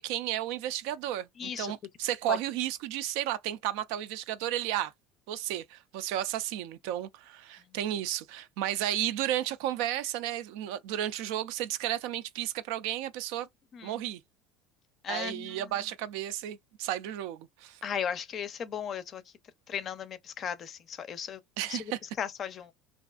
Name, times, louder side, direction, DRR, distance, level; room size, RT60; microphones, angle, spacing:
voice 1, 0.0-4.9 5.3-13.5 13.8-14.2 15.1-17.8 21.6-22.0, right 12 dB, 75° right, 0.4 m, -33 dB
voice 2, 1.4-1.7 2.3-2.4 13.7-14.0 15.0-15.6 17.8-19.2 19.7-21.9 22.2-22.7, left 8 dB, 40° left, 0.5 m, -36 dB
2.5 x 2.3 x 2.3 m
supercardioid pair, 105°, 0 cm